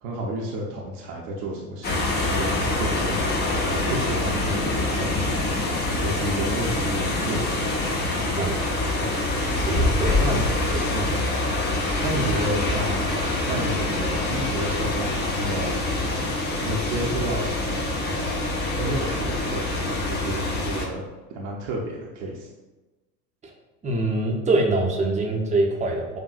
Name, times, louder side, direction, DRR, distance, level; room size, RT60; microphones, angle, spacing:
voice 1, 0.0-3.4 3.7-5.3 6.0-7.5 9.0-9.2 10.2-10.5 12.0-13.1 13.5-15.8 16.6-18.5 18.8-21.0 21.3-22.5, right 1 dB, 45° right, -2 dB, 0.8 m, -31 dB
sound 1, 1.8-20.9, left 2 dB, 20° left, 0.7 m, -25 dB
voice 2, 9.5-10.4 10.7-11.2 23.4-23.5 23.8-26.2, right 2 dB, 15° right, -1 dB, 0.7 m, -25 dB
7.7 x 2.6 x 2.4 m, 1.2 s
figure-of-eight pair, 75°, 49 cm